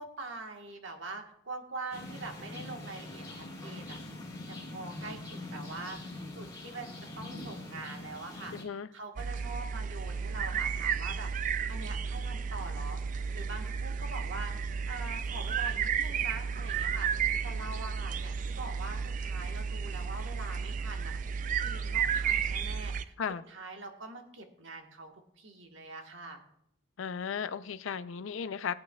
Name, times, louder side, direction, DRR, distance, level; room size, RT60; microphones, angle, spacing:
voice 1, 0.0-4.0 4.5-6.9 7.2-11.3 11.7-13.0 13.3-17.1 17.4-23.1 23.5-26.4, right 3 dB, 65° right, 4 dB, 1.3 m, -44 dB
sound 1, 1.9-8.6, left 2 dB, 15° left, 2.4 m, -43 dB
voice 2, 8.5-8.9 23.2-23.4 27.0-28.7, left 7 dB, 70° left, 13 dB, 0.4 m, -35 dB
sound 2, 9.2-23.0, right 6 dB, 40° right, 0.3 m, -33 dB
17.5 x 8.6 x 2.3 m, 0.73 s
head